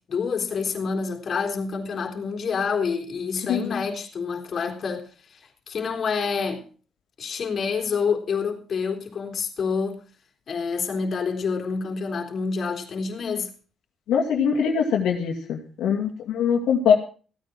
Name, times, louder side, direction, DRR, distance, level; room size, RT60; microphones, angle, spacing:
voice 1, 0.1-5.4 5.7-6.6 7.2-10.0 10.5-13.5, left 5 dB, 50° left, 2 dB, 4.0 m, -27 dB
voice 2, 14.1-16.9, left 7 dB, 85° left, -1 dB, 2.5 m, -22 dB
16.0 x 9.3 x 6.2 m, 0.39 s
cardioid pair, 90°, 0 cm